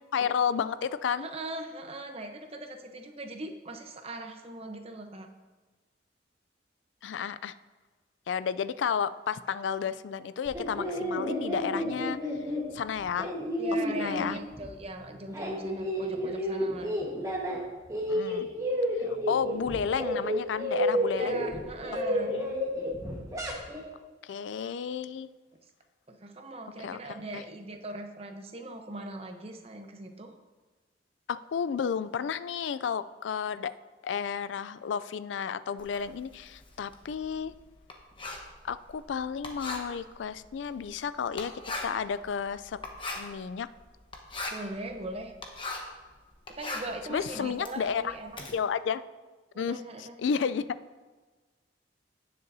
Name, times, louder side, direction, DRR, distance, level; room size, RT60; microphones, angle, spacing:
voice 1, 0.1-1.3 7.0-7.5 8.3-12.2 12.7-13.3 13.9-14.4 18.1-18.5 19.3-21.4 22.3-22.5 24.2-25.3 26.8-27.0 27.3-27.4 31.3-33.7 34.0-37.5 38.6-41.5 41.8-42.8 43.2-43.7 47.1-48.1 48.5-49.1 49.6-50.8, left 7 dB, 85° left, 15 dB, 0.4 m, -32 dB
voice 2, 1.2-5.3 13.6-17.0 21.1-22.3 26.1-30.3 44.5-45.3 46.5-48.3 49.5-50.2, right 2 dB, 35° right, 5 dB, 0.9 m, -40 dB
sound 1, 10.4-14.8 15.1-17.6 17.9-23.8, equal, 20° right, 1.4 m, -31 dB
Writing, 35.8-46.0 46.3-48.5, left 2 dB, 30° left, 1.1 m, -40 dB
17.0 x 6.7 x 2.7 m, 1.3 s
head